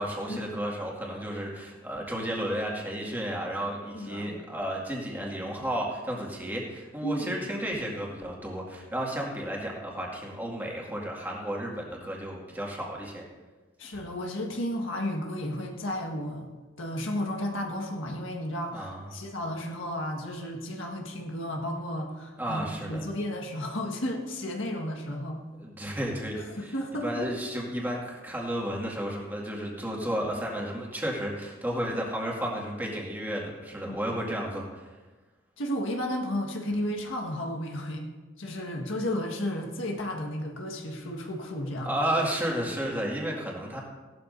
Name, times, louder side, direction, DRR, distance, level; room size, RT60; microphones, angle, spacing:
voice 1, 0.0-13.2 18.7-19.1 22.4-23.0 25.6-26.7 27.0-34.9 41.8-43.8, equal, 10° right, -3 dB, 2.1 m, -32 dB
voice 2, 3.9-4.4 7.0-7.3 13.8-16.5 16.8-25.4 25.9-26.0 26.3-27.3 33.8-34.0 35.6-38.1 38.4-41.9, left 1 dB, 75° left, 1 dB, 1.6 m, -33 dB
17.0 x 12.5 x 2.7 m, 1.3 s
head